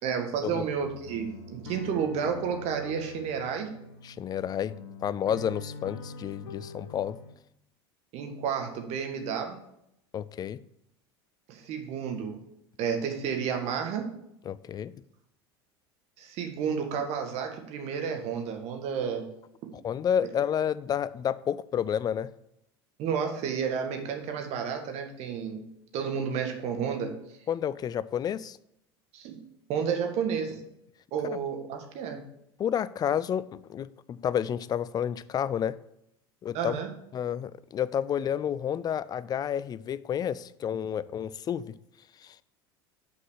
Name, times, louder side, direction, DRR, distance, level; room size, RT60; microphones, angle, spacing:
voice 1, 0.0-3.7 8.1-9.6 11.5-12.4 12.8-14.1 16.2-19.3 23.0-25.6 25.9-27.1 29.1-29.4 29.7-30.6 31.1-32.2 36.5-36.9, right 7 dB, 55° right, 4 dB, 1.5 m, -31 dB
sound 1, 0.7-7.3, left 3 dB, 80° left, 0.8 m, -44 dB
voice 2, 4.0-7.2 10.1-10.6 14.5-14.9 19.8-22.3 27.5-28.6 31.3-31.4 32.6-35.8 36.4-36.8 37.1-41.7 42.2-42.4, left 9 dB, 30° left, 18 dB, 0.4 m, -30 dB
5.9 x 4.9 x 6.3 m, 0.78 s
hypercardioid pair, 80°, 13 cm